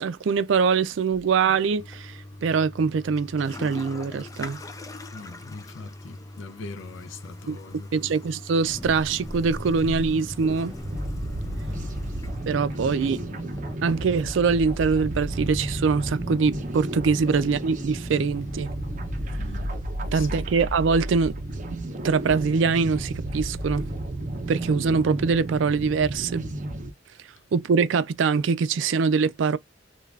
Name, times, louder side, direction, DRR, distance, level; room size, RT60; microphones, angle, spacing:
voice 1, 0.0-4.6 7.5-7.6 7.9-10.8 12.5-13.2 13.8-18.7 20.1-21.4 22.0-23.8 24.5-26.5 27.5-29.6, right 5 dB, 85° right, 0.4 m, -23 dB
Toilet flush, 1.8-13.8, left 2 dB, 20° left, 0.3 m, -42 dB
voice 2, 5.1-8.1 11.4-12.0 19.4-19.7 20.0-20.5, left 3 dB, 90° left, 0.5 m, -42 dB
sound 1, 8.6-19.7, equal, ahead, 1.6 m, -38 dB
sound 2, 10.4-26.9, right 1 dB, 45° right, 0.6 m, -33 dB
3.2 x 2.3 x 2.4 m
head